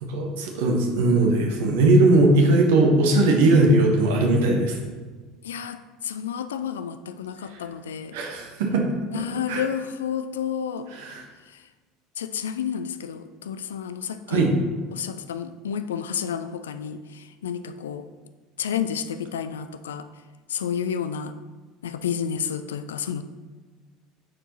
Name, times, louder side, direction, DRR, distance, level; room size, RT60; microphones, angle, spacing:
voice 1, 0.1-4.8 8.1-8.8 9.5-9.6 10.9-11.2 14.3-14.5, right 2 dB, 60° right, 2 dB, 1.2 m, -19 dB
voice 2, 5.4-8.2 9.1-10.9 12.2-14.4 14.9-18.1 18.6-20.1 20.5-21.3 21.8-23.2, left 8 dB, 70° left, 10 dB, 0.3 m, -30 dB
9.5 x 4.5 x 2.9 m, 1.3 s
figure-of-eight pair, 70°, 0 cm